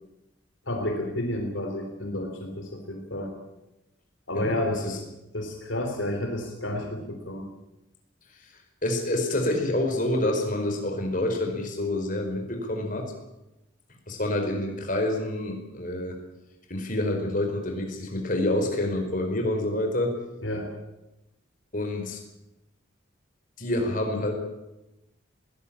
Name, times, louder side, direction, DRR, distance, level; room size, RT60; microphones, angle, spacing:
voice 1, 0.7-3.3 4.3-5.0 5.3-7.5 20.4-20.7, left 1 dB, 70° left, 3 dB, 3.4 m, -30 dB
voice 2, 4.3-5.0 8.8-13.1 14.1-16.2 16.7-20.2 21.7-22.2 23.6-24.3, left 1 dB, 40° left, 3 dB, 4.9 m, -27 dB
21.5 x 17.5 x 8.8 m, 0.95 s
head